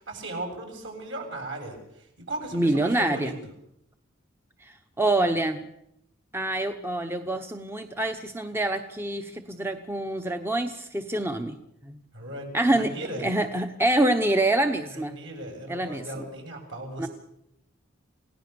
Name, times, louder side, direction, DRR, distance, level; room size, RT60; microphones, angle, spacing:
voice 1, 0.0-1.8 2.2-3.3 12.1-13.2 14.9-17.1, right 1 dB, 65° right, 3 dB, 7.8 m, -36 dB
voice 2, 2.5-3.3 4.6-5.7 6.3-11.6 11.9-12.0 12.5-12.9 13.2-15.2 15.7-16.3 17.0-17.1, right 1 dB, 10° right, 6 dB, 0.9 m, -26 dB
29.0 x 17.5 x 6.9 m, 0.79 s
head